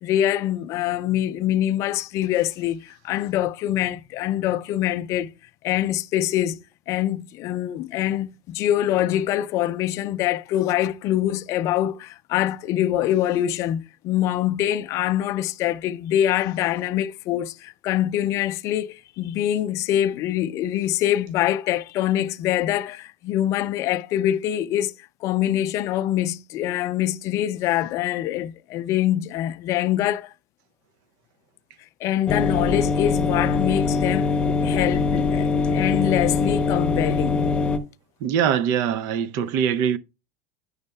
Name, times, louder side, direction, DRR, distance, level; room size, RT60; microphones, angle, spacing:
voice 1, 0.0-5.3 5.6-6.6 6.9-24.9 25.2-30.3 32.0-34.4 34.6-37.4, left 12 dB, 45° left, 0.4 m, -24 dB
sound 1, 32.3-37.8, left 4 dB, 15° left, 0.8 m, -22 dB
voice 2, 38.2-40.0, right 8 dB, 60° right, 0.5 m, -22 dB
9.5 x 6.4 x 2.3 m
supercardioid pair, 140°, 7 cm